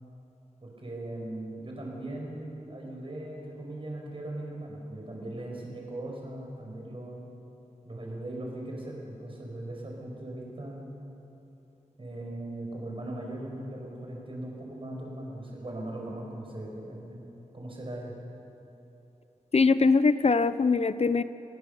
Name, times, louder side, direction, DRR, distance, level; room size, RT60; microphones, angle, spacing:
voice 1, 0.6-7.3 7.9-10.8 12.0-17.2 17.5-18.1, right 1 dB, 40° right, -1 dB, 6.0 m, -39 dB
voice 2, 19.5-21.2, left 4 dB, 50° left, 13 dB, 0.7 m, -22 dB
29.5 x 19.0 x 7.1 m, 3.0 s
wide cardioid pair, 105°, 14 cm